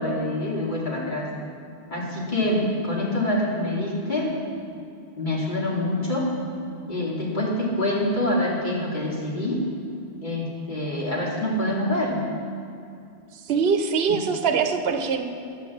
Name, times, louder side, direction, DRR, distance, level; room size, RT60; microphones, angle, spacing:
voice 1, 0.0-1.3 1.9-4.3 5.2-6.3 6.9-9.6 10.2-12.2, left 1 dB, 45° left, -4 dB, 2.6 m, -26 dB
voice 2, 13.5-15.2, right 6 dB, 65° right, 7 dB, 1.0 m, -23 dB
13.0 x 6.6 x 7.1 m, 2.6 s
omnidirectional pair, 1.1 m